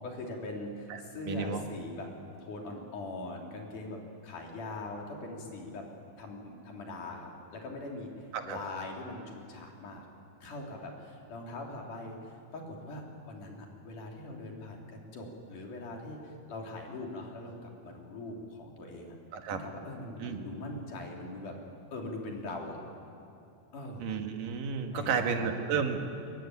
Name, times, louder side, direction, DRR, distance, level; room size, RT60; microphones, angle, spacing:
voice 1, 0.0-2.1 2.4-5.9 6.2-10.1 10.4-19.2 19.5-21.6 21.9-22.8 23.7-24.1 24.9-25.5, left 2 dB, 75° left, 0 dB, 4.6 m, -41 dB
voice 2, 0.9-1.6 8.3-8.6 19.3-19.6 20.2-20.4 24.0-26.1, right 6 dB, 90° right, 5 dB, 3.3 m, -32 dB
23.0 x 22.0 x 9.7 m, 2.7 s
omnidirectional pair, 3.7 m